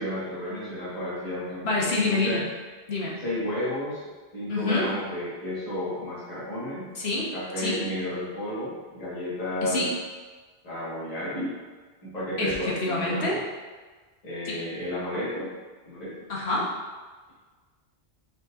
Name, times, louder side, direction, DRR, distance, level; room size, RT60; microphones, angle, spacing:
voice 1, 0.0-2.4 3.2-4.0 4.3-6.9 7.3-9.8 10.6-11.5 12.0-13.4 14.2-15.5 15.8-16.3, left 1 dB, 35° left, -9 dB, 1.5 m, -32 dB
voice 2, 1.6-2.4 2.9-3.2 4.5-4.9 6.9-7.3 7.6-7.8 9.6-9.9 12.4-13.4 14.5-14.6 16.3-16.7, left 3 dB, 75° left, -4 dB, 1.2 m, -26 dB
5.4 x 4.0 x 2.4 m, 1.4 s
omnidirectional pair, 1.1 m